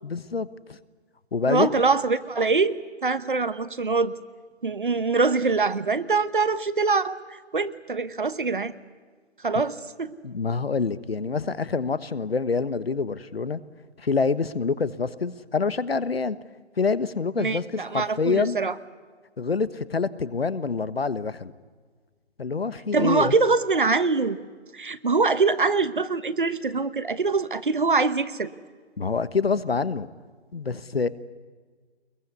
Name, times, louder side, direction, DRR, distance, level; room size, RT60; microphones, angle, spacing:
voice 1, 0.0-0.8 1.3-1.8 10.2-13.6 14.0-16.4 16.8-18.6 19.4-21.5 22.4-23.3 29.0-30.1 30.5-31.1, left 4 dB, 60° left, 15 dB, 1.3 m, -26 dB
voice 2, 1.5-4.1 4.6-8.7 9.4-10.1 17.4-18.7 22.9-24.4 24.7-28.5, right 4 dB, 45° right, 14 dB, 1.1 m, -24 dB
23.5 x 22.0 x 9.5 m, 1.5 s
hypercardioid pair, 175°, 34 cm